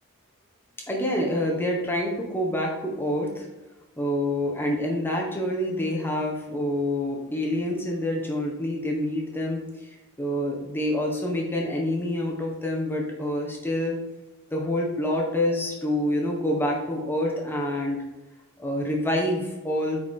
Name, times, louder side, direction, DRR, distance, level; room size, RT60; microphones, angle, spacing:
voice 1, 0.9-3.5 4.0-9.9 10.2-14.0 14.5-18.0 18.6-20.0, left 1 dB, 10° left, -1 dB, 1.3 m, -27 dB
8.6 x 4.8 x 3.8 m, 1.1 s
head